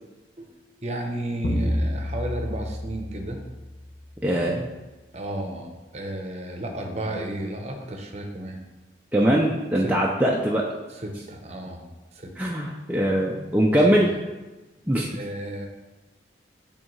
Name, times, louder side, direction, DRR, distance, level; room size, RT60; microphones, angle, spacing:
voice 1, 0.8-3.4 5.1-8.6 9.8-9.9 10.9-11.8 12.2-12.3 13.8-14.1 14.9-15.7, right 1 dB, 40° right, 3 dB, 0.7 m, -33 dB
sound 1, 1.4-4.2, equal, 40° left, 0.7 m, -29 dB
voice 2, 4.2-4.7 9.1-10.6 12.4-14.1 14.9-15.1, right 1 dB, 10° right, -3 dB, 0.4 m, -21 dB
8.6 x 3.5 x 3.1 m, 1.1 s
head